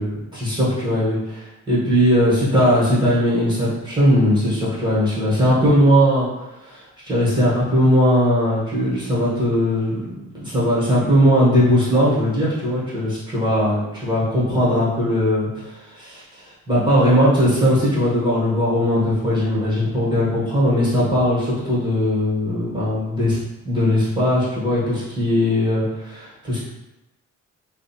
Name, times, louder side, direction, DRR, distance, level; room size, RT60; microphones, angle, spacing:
voice 1, 0.0-6.3 6.6-10.0 10.4-15.6 15.9-23.4 23.6-26.6, equal, 15° right, -9 dB, 1.1 m, -19 dB
2.6 x 2.0 x 2.7 m, 1.0 s
cardioid pair, 90°, 30 cm